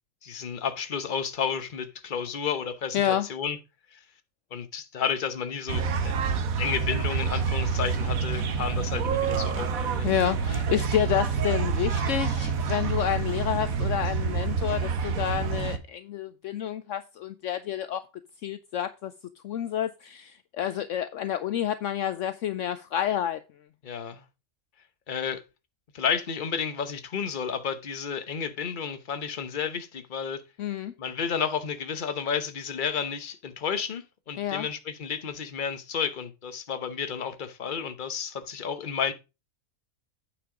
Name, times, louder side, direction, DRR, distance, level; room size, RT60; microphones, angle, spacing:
voice 1, 0.2-3.0 3.3-3.6 3.9-4.0 4.5-6.1 6.6-10.1 23.8-24.2 25.1-25.4 25.9-30.4 31.0-39.1, left 7 dB, 40° left, 1.0 m, -31 dB
voice 2, 2.9-3.3 10.0-18.0 18.4-19.1 19.4-23.4 30.6-30.9 34.4-34.7, left 10 dB, 70° left, 0.9 m, -29 dB
sound 1, 5.7-15.8, right 5 dB, 80° right, 1.4 m, -27 dB
8.8 x 5.2 x 4.9 m
omnidirectional pair, 1.5 m